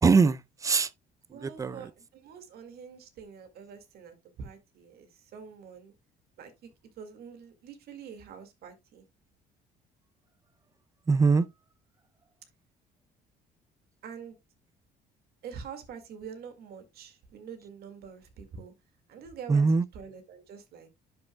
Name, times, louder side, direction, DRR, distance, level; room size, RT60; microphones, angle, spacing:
voice 1, 0.0-0.9 1.3-1.9 11.1-11.5 19.5-19.9, right 4 dB, 20° right, 0.5 m, -23 dB
voice 2, 1.3-5.9 6.4-6.7 7.0-9.0 14.0-14.4 15.4-18.7 19.1-20.9, right 6 dB, 70° right, 2.1 m, -45 dB
10.5 x 6.3 x 2.3 m
cardioid pair, 110°, 17 cm